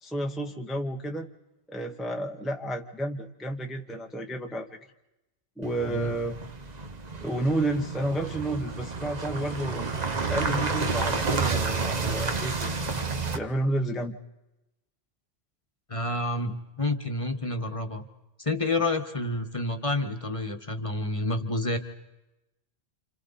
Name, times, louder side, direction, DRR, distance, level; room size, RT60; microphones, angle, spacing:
voice 1, 0.0-1.3 1.7-4.8 5.6-6.3 7.2-9.9 10.3-12.7 13.3-14.1, right 1 dB, ahead, 2 dB, 1.0 m, -31 dB
sound 1, 5.6-13.4, right 4 dB, 35° right, 1.2 m, -30 dB
voice 2, 15.9-18.1 18.4-21.8, left 2 dB, 25° left, 5 dB, 1.5 m, -29 dB
30.0 x 27.5 x 4.2 m, 0.96 s
omnidirectional pair, 1.2 m